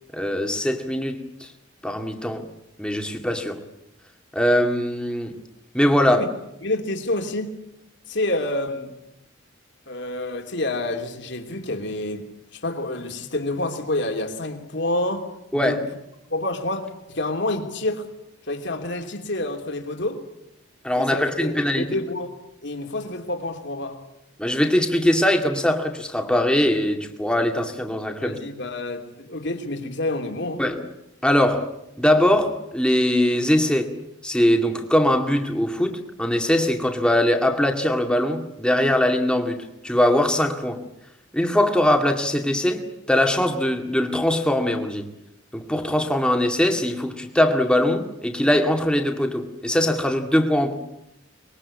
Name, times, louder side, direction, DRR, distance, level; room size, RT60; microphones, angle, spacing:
voice 1, 0.1-1.5 1.8-2.5 2.8-3.6 4.3-5.3 5.7-6.2 15.5-15.8 20.8-21.9 24.4-28.4 30.6-30.8 31.2-31.7 32.0-33.9 34.2-40.8 41.3-45.1 45.5-50.7, left 1 dB, 5° left, 2.2 m, -21 dB
voice 2, 6.6-7.6 8.1-8.9 9.9-15.3 15.5-15.8 16.3-18.1 18.5-20.3 20.9-22.3 22.6-24.0 28.2-30.6, left 2 dB, 60° left, 3.0 m, -28 dB
24.0 x 21.5 x 8.6 m
head